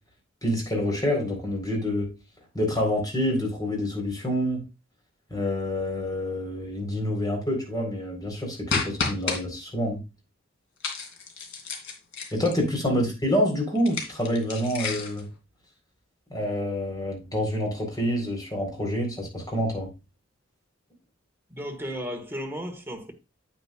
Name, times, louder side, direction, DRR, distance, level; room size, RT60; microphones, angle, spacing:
voice 1, 0.4-2.1 2.5-4.6 5.3-10.0 12.3-15.3 16.3-19.9, equal, 20° left, 4.1 m, -27 dB
sound 1, 8.7-9.4 10.8-12.7 13.8-15.2, left 4 dB, 65° left, 2.6 m, -31 dB
voice 2, 21.5-23.1, equal, 10° right, 1.7 m, -34 dB
9.0 x 8.8 x 2.4 m
head